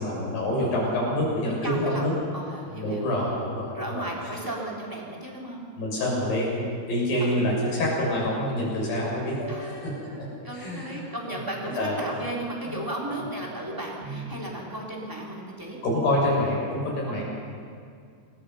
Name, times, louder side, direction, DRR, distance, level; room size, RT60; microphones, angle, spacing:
voice 1, 0.0-2.1 2.7-4.1 5.8-6.6 6.9-9.7 10.2-10.3 10.5-11.1 11.7-12.2 12.7-12.8 14.0-14.2 15.8-17.2, left 1 dB, 75° left, -3 dB, 8.6 m, -26 dB
voice 2, 1.6-3.1 3.7-5.6 7.2-7.4 9.5-15.8 17.1-17.2, right 1 dB, 5° right, -3 dB, 3.4 m, -35 dB
28.0 x 21.0 x 5.8 m, 2.3 s
omnidirectional pair, 4.8 m